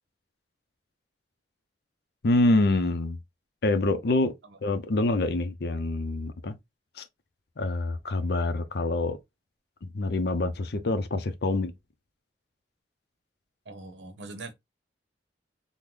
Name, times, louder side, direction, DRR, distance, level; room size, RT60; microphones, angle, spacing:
voice 1, 2.2-3.2 3.6-4.3 4.6-6.6 7.0-7.1 7.6-9.2 9.8-11.7, left 2 dB, 65° left, 0.5 m, -26 dB
voice 2, 13.7-14.5, right 2 dB, 80° right, 0.7 m, -42 dB
3.7 x 2.1 x 3.0 m
head